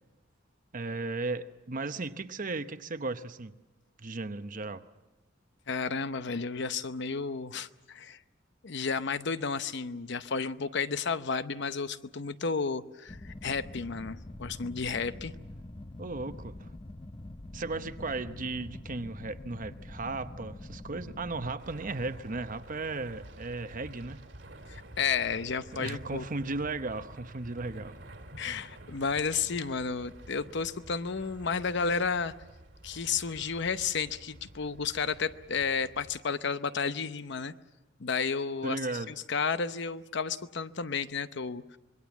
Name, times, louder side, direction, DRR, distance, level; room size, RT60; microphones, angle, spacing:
voice 1, 0.7-3.5 4.0-4.8 16.0-16.7 17.5-24.2 25.7-28.0 38.6-39.1, right 3 dB, 45° right, 0.9 m, -36 dB
voice 2, 5.7-8.2 8.6-15.3 24.7-26.2 28.4-32.3 32.8-37.5 38.0-38.8 39.1-41.6, left 5 dB, 65° left, 0.8 m, -32 dB
sound 1, 13.1-21.6, left 1 dB, 25° left, 0.7 m, -45 dB
sound 2, 21.6-36.2, right 1 dB, 65° right, 2.4 m, -49 dB
26.0 x 21.5 x 7.3 m
head